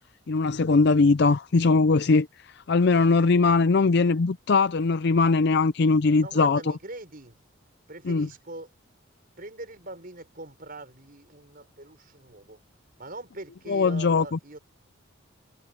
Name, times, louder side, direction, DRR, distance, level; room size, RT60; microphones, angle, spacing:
voice 1, 0.3-2.3 2.7-6.6 8.1-8.3 13.7-14.2, left 4 dB, 55° left, 0.5 m, -20 dB
voice 2, 6.2-7.4 7.9-8.7 9.4-12.6 13.0-14.6, right 2 dB, 45° right, 5.9 m, -42 dB
head